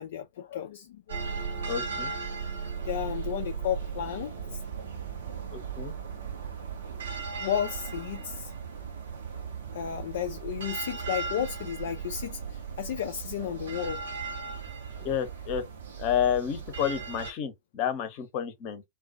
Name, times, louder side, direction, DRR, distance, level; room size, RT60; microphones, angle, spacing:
voice 1, 0.0-1.3 2.8-4.6 5.3-5.4 6.8-8.5 9.7-14.0, left 9 dB, 60° left, 0.3 m, -33 dB
sound 1, 1.1-17.3, right 5 dB, 70° right, 0.7 m, -37 dB
voice 2, 1.7-2.1 5.5-5.9 15.0-15.6 16.0-18.8, left 9 dB, 45° left, 0.7 m, -30 dB
2.3 x 2.2 x 2.5 m
figure-of-eight pair, 90°, 0 cm